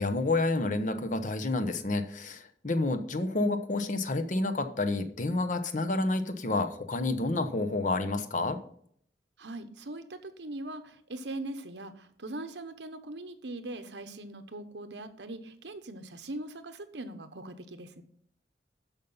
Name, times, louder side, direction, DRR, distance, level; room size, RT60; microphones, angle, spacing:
voice 1, 0.0-8.6, left 2 dB, 45° left, 9 dB, 1.0 m, -29 dB
voice 2, 9.4-18.0, right 2 dB, 85° right, 8 dB, 1.1 m, -41 dB
12.5 x 5.4 x 5.6 m, 0.64 s
head